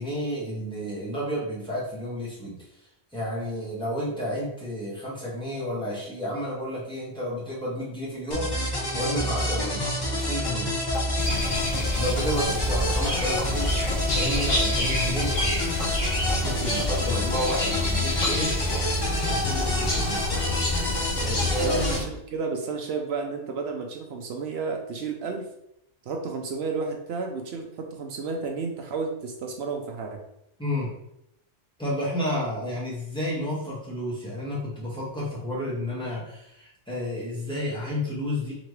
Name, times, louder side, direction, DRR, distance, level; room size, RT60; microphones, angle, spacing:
voice 1, 0.0-2.6 3.1-8.5 8.9-10.7 11.9-15.3 16.4-18.5 19.3-20.2 21.2-21.8 30.6-30.9 31.8-38.5, equal, 5° left, -7 dB, 1.5 m, -31 dB
sound 1, 8.3-22.0, left 1 dB, 20° left, 0.8 m, -28 dB
sound 2, 9.0-9.2 9.5-9.7 10.0-10.1 10.4-10.6 10.9-11.1 11.4-11.6 11.9-12.2 12.4-12.6 12.9-13.5 13.9-14.1 14.4-14.5 14.9-15.0 15.3-15.5 15.8-15.9 16.3-16.4 16.8-16.9 17.3-17.4 17.7-17.9 18.2-18.4 18.7-18.9 19.2-19.4 19.7-19.9 20.2-20.3 20.7-20.8 21.2-21.3, left 3 dB, 85° left, 1.3 m, -39 dB
sound 3, 11.2-22.0, left 1 dB, 50° left, 1.2 m, -28 dB
voice 2, 21.6-25.5 26.1-30.2, right 4 dB, 65° right, 3 dB, 0.8 m, -32 dB
3.8 x 3.3 x 3.1 m, 0.79 s
omnidirectional pair, 1.2 m